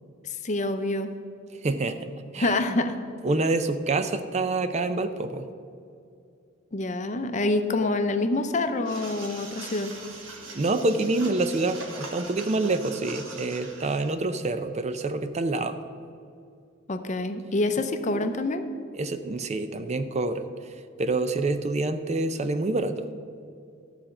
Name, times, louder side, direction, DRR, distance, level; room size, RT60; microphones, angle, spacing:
voice 1, 0.2-1.1 2.4-3.0 6.7-9.9 16.9-18.6, left 2 dB, 35° left, 8 dB, 0.6 m, -26 dB
voice 2, 1.5-2.6 3.2-5.5 10.5-15.8 18.9-23.1, right 2 dB, 35° right, 10 dB, 0.5 m, -27 dB
sound 1, 8.8-14.1, right 3 dB, 75° right, 1.5 m, -42 dB
12.5 x 4.3 x 7.7 m, 2.4 s
head